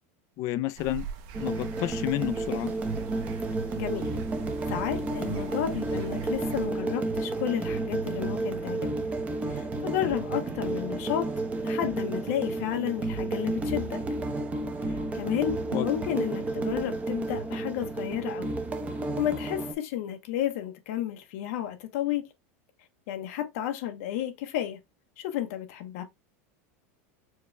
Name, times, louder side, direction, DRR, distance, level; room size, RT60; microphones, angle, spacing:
voice 1, 0.4-1.1 1.4-2.7 15.7-15.9, left 14 dB, 45° left, 0.4 m, -30 dB
sound 1, 0.8-6.7, right 6 dB, 55° right, 0.8 m, -44 dB
sound 2, 1.3-19.7, right 2 dB, 15° right, 0.6 m, -31 dB
voice 2, 3.8-4.1 4.7-8.9 9.5-11.3 11.6-14.0 14.8-18.5 19.2-22.2 23.1-24.8 25.2-26.0, left 11 dB, 70° left, 0.7 m, -32 dB
4.6 x 2.3 x 3.1 m
supercardioid pair, 135°, 8 cm